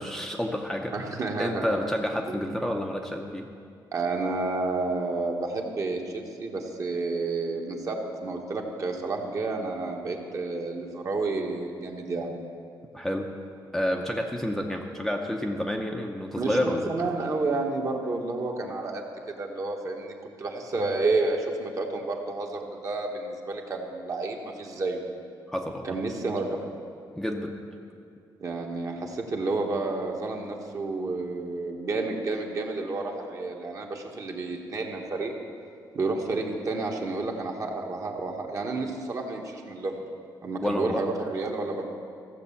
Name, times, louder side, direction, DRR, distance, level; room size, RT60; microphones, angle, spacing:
voice 1, 0.0-0.9 1.4-3.5 12.9-13.3 13.7-16.9 25.5-26.0 27.2-27.5 40.6-41.0, left 1 dB, 5° left, 1 dB, 0.6 m, -29 dB
voice 2, 0.9-1.8 2.3-2.4 3.9-12.3 16.4-25.1 25.8-26.6 28.4-35.3 35.9-40.0 40.4-41.8, right 3 dB, 40° right, 2 dB, 1.3 m, -30 dB
14.5 x 7.3 x 7.1 m, 2.4 s
cardioid pair, 150°, 8 cm